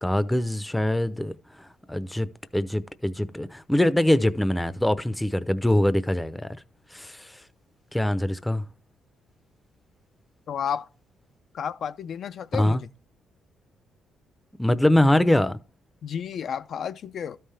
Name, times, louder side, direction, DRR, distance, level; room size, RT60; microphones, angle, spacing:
voice 1, 0.0-1.3 1.6-2.3 2.5-6.5 6.9-7.3 7.9-8.6 12.5-12.8 14.6-15.6, left 1 dB, 5° left, 0.6 m, -23 dB
voice 2, 10.5-10.9 11.5-12.9 16.0-17.4, left 8 dB, 60° left, 0.5 m, -31 dB
12.5 x 5.6 x 3.4 m
cardioid pair, 90°, 0 cm